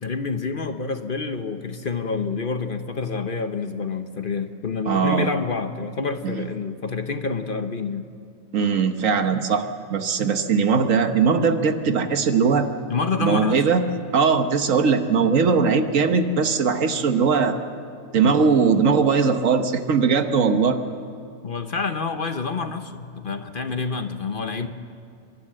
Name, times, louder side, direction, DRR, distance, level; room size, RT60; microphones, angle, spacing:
voice 1, 0.0-8.1 12.9-13.7 21.4-24.7, left 4 dB, 45° left, 8 dB, 1.0 m, -28 dB
voice 2, 4.9-5.3 6.2-6.4 8.5-12.7 13.2-13.8 14.1-17.6 18.1-20.8, right 5 dB, 75° right, 8 dB, 1.5 m, -20 dB
29.5 x 12.0 x 7.6 m, 2.3 s
omnidirectional pair, 1.4 m